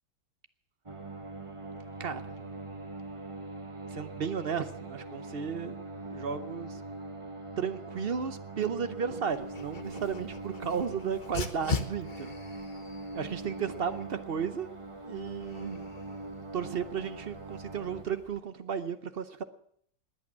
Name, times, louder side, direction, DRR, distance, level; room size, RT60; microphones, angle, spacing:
sound 1, 0.9-18.0, right 2 dB, 20° right, 1.0 m, -42 dB
voice 1, 2.0-2.5 3.8-5.8 6.1-6.8 7.6-12.3 13.1-14.7 15.0-15.9 16.5-19.4, right 7 dB, 55° right, 11 dB, 0.6 m, -34 dB
Dog, 9.3-18.4, left 5 dB, 35° left, 0.9 m, -42 dB
20.5 x 8.6 x 7.3 m, 0.65 s
omnidirectional pair, 2.0 m